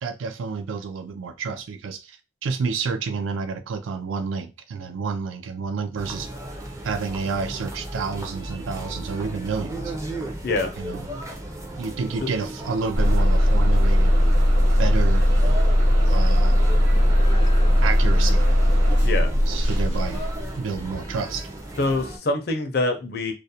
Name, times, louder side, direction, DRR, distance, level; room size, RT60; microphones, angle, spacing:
voice 1, 0.0-2.2 2.4-6.3 6.8-9.9 10.8-11.1 11.8-14.2 14.8-15.3 16.0-16.6 17.8-18.5 19.5-20.2 20.6-21.5, right 5 dB, 85° right, 0.4 m, -29 dB
sound 1, 6.0-22.2, right 1 dB, 15° right, 0.4 m, -35 dB
Bus / Engine starting, 12.9-20.7, equal, 65° right, 0.8 m, -18 dB
voice 2, 19.0-19.3 21.8-23.3, left 2 dB, 50° left, 0.5 m, -25 dB
2.4 x 2.0 x 2.7 m
head